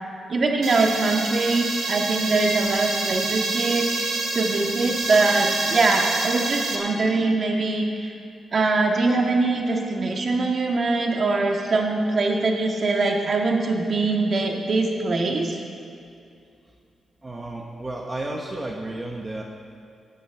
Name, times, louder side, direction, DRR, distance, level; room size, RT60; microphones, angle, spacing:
voice 1, 0.3-3.9 4.3-8.1 8.5-15.6, right 3 dB, 55° right, 1 dB, 1.8 m, -22 dB
sound 1, 0.6-6.8, right 3 dB, 75° right, 1.8 m, -27 dB
voice 2, 17.2-19.4, right 2 dB, 25° right, 0 dB, 1.3 m, -32 dB
18.5 x 9.9 x 3.7 m, 2.5 s
cardioid pair, 70°, 0 cm